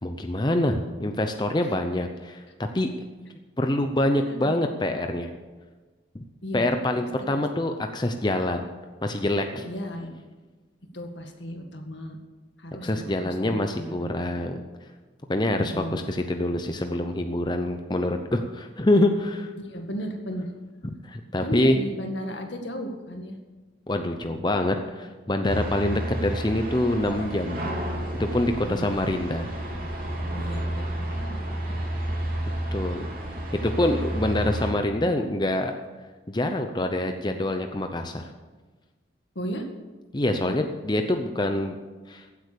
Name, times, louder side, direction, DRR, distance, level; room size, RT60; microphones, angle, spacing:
voice 1, 0.0-2.4 2.7-2.9 3.6-5.3 6.1-6.2 6.5-8.7 9.0-9.7 12.8-14.6 15.3-19.5 21.0-21.8 23.9-27.6 28.2-29.5 32.7-33.1 33.6-35.7 36.3-38.3 40.1-41.8 42.1-42.2, left 1 dB, 25° left, 5 dB, 0.7 m, -25 dB
voice 2, 4.3-4.6 6.4-6.6 7.3-7.4 9.6-10.2 10.9-12.2 12.6-14.2 15.5-16.1 19.6-20.5 21.4-23.4 28.6-29.1 30.3-31.7 39.4-39.7 40.4-40.6, equal, 75° left, 4 dB, 2.0 m, -35 dB
sound 1, 25.4-34.7, right 1 dB, 50° right, 3.3 m, -31 dB
15.5 x 8.3 x 6.8 m, 1.3 s
head